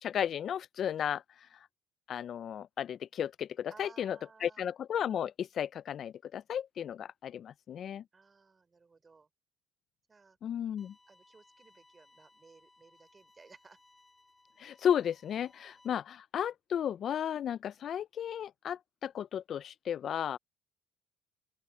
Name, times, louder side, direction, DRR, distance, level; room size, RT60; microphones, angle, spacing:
voice 1, 0.0-1.6 2.1-8.0 10.4-10.9 14.6-20.4, left 9 dB, 50° left, 0.3 m, -34 dB
voice 2, 3.7-4.7 8.1-9.3 10.1-10.4 11.1-13.8, right 4 dB, 25° right, 4.0 m, -58 dB
sound 1, 10.8-15.9, left 2 dB, 15° left, 2.5 m, -64 dB
open air
cardioid pair, 105°, 0 cm